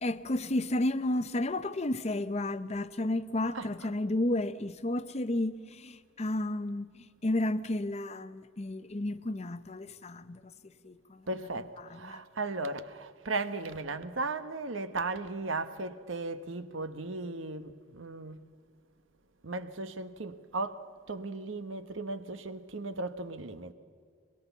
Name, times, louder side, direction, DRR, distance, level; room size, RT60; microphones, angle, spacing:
voice 1, 0.0-10.4 10.8-11.5 11.9-12.2, left 1 dB, 35° left, 0.7 m, -32 dB
voice 2, 11.3-18.4 19.4-23.7, right 3 dB, 80° right, 1.1 m, -36 dB
22.5 x 22.0 x 7.0 m
head